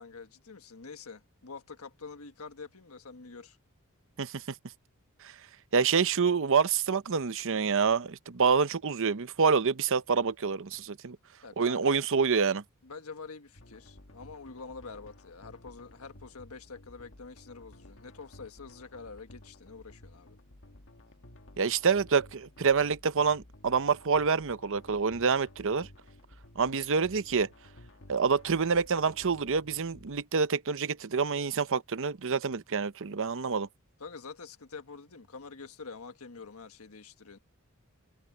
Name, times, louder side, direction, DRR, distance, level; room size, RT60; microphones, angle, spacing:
voice 1, 0.0-3.6 11.4-11.9 12.8-20.4 34.0-37.4, left 4 dB, 80° left, 1.5 m, -46 dB
voice 2, 5.7-11.2 11.6-12.6 21.6-25.9 26.6-27.5 28.1-33.7, right 5 dB, 65° right, 0.8 m, -27 dB
sound 1, 13.5-30.2, left 1 dB, 60° left, 1.6 m, -54 dB
head